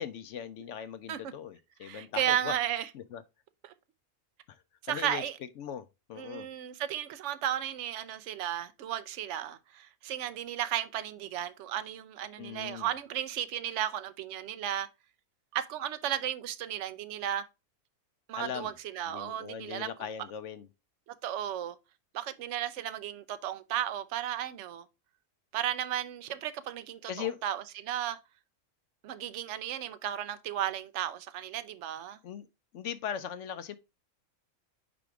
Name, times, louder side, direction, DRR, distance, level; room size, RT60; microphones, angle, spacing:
voice 1, 0.0-2.6 2.9-3.2 4.5-4.6 4.9-5.2 5.6-6.5 12.4-12.9 18.3-18.7 19.1-20.7 27.1-27.4 32.2-32.5 32.7-33.8, left 9 dB, 65° left, 0.8 m, -39 dB
voice 2, 1.8-2.9 4.8-5.4 6.2-14.9 15.5-17.4 18.3-19.9 21.2-21.8 22.1-24.8 25.5-28.2 29.0-32.2, right 11 dB, 60° right, 0.9 m, -34 dB
5.0 x 5.0 x 4.6 m
omnidirectional pair, 1.5 m